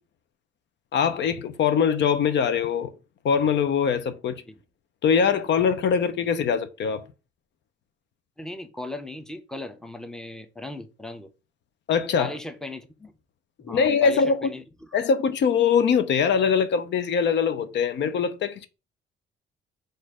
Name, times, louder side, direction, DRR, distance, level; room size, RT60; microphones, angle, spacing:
voice 1, 0.9-2.9 3.2-4.4 5.0-7.0 11.9-12.3 13.7-14.5 14.9-18.7, left 6 dB, 65° left, 0.6 m, -22 dB
voice 2, 8.4-11.3 12.2-13.1 13.6-15.0, left 1 dB, 5° left, 0.7 m, -38 dB
4.2 x 2.5 x 4.8 m
cardioid pair, 90°, 20 cm